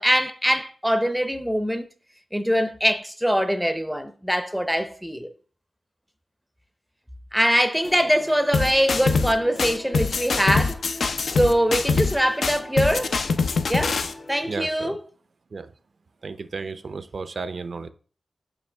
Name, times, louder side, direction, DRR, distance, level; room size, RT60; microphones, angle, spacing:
voice 1, 0.0-1.9 2.3-5.3 7.3-10.8 11.3-13.3 13.7-14.0 14.3-15.0, equal, ahead, 0.5 m, -23 dB
sound 1, 7.8-14.7, left 2 dB, 45° left, 1.4 m, -42 dB
sound 2, 8.5-9.3 9.6-12.2 12.4-14.1, left 4 dB, 75° left, 0.5 m, -23 dB
voice 2, 14.4-15.0 15.5-15.8 16.2-17.9, right 4 dB, 55° right, 0.5 m, -34 dB
7.0 x 5.5 x 3.3 m
wide cardioid pair, 120°, 0 cm